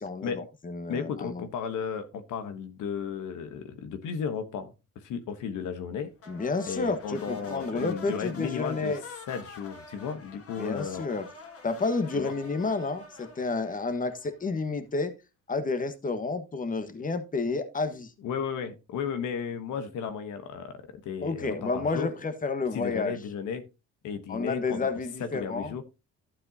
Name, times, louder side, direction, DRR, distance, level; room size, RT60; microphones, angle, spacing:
voice 1, 0.0-1.5 6.3-9.0 10.6-11.3 11.6-15.1 15.5-18.1 21.2-23.2 24.3-25.7, left 3 dB, 25° left, 10 dB, 1.3 m, -30 dB
voice 2, 0.9-6.1 6.7-9.0 9.3-11.1 12.1-12.3 18.2-22.1 22.7-23.7 24.0-24.9 25.2-25.8, left 7 dB, 80° left, 9 dB, 1.1 m, -34 dB
sound 1, 6.2-14.7, left 4 dB, 50° left, 2.2 m, -47 dB
12.0 x 7.6 x 2.7 m, 0.26 s
cardioid pair, 90°, 30 cm